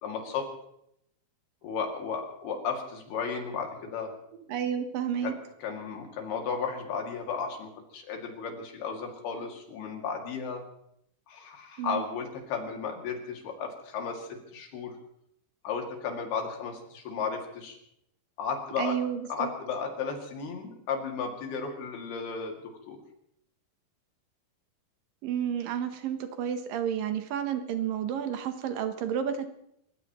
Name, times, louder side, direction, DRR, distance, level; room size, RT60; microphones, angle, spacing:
voice 1, 0.0-0.5 1.6-4.1 5.2-5.3 5.6-10.6 11.3-15.0 15.6-17.8 18.4-19.0 19.3-22.6 22.9-23.0, left 5 dB, 85° left, 2 dB, 4.3 m, -34 dB
voice 2, 4.5-5.3 11.8-12.0 18.8-19.5 25.2-29.5, right 8 dB, 70° right, 8 dB, 2.5 m, -31 dB
29.0 x 15.0 x 3.0 m, 0.76 s
omnidirectional pair, 4.4 m